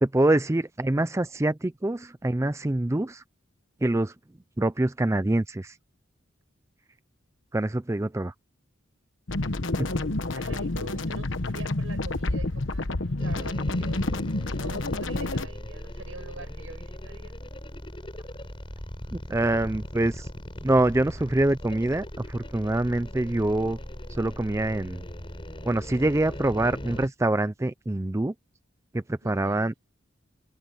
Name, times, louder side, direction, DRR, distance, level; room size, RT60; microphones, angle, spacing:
voice 1, 0.0-3.2 3.8-4.1 4.6-5.8 7.5-8.3 9.8-9.9 10.3-10.4 19.1-20.3 20.6-23.8 24.1-25.0 25.6-28.3 28.9-29.7, right 1 dB, 15° right, 0.4 m, -25 dB
sound 1, 9.3-15.5, left 2 dB, 70° left, 1.2 m, -29 dB
voice 2, 10.3-14.1 14.5-17.3 29.2-29.7, right 3 dB, 85° right, 7.3 m, -45 dB
sound 2, 13.2-27.1, equal, 25° left, 5.9 m, -39 dB
head